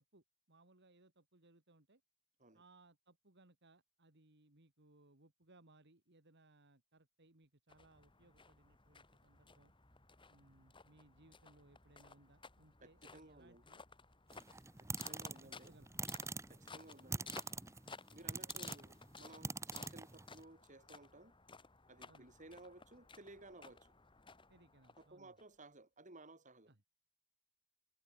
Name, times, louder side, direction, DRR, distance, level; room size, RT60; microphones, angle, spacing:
voice 1, 0.0-2.0 2.5-9.7 10.3-13.8 14.9-16.0 22.1-22.4 24.5-25.3 26.7-26.8, right 2 dB, 50° right, 2.5 m, -67 dB
sound 1, 7.7-25.4, left 4 dB, 20° left, 2.7 m, -58 dB
voice 2, 12.8-13.6 14.8-15.8 16.5-17.3 18.1-21.3 21.9-24.0 25.0-26.7, right 2 dB, 35° right, 4.8 m, -58 dB
sound 2, 14.3-20.4, right 4 dB, 15° right, 0.8 m, -44 dB
head